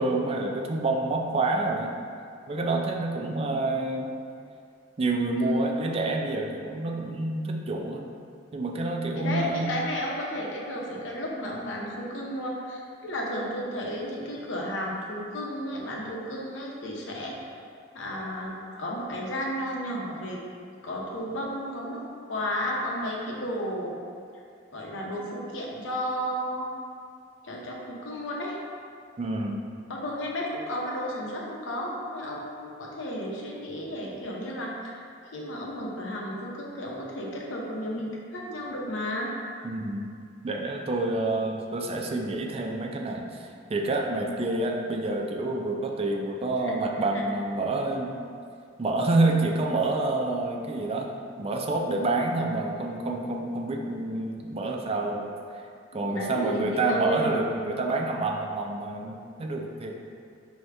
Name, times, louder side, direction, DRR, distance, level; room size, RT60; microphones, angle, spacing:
voice 1, 0.0-1.9 2.5-4.1 5.0-8.1 8.5-9.7 29.2-29.6 39.6-40.1 40.4-48.1 48.8-55.3 55.9-60.0, right 2 dB, 30° right, 1 dB, 0.3 m, -28 dB
voice 2, 5.3-5.9 9.1-17.4 17.9-18.5 18.8-20.4 20.8-22.0 22.3-23.9 24.7-26.8 27.4-28.6 29.9-35.0 35.3-39.3 46.6-47.2 55.9-57.4, equal, 75° left, -2 dB, 0.7 m, -33 dB
4.8 x 2.7 x 3.3 m, 2.3 s
head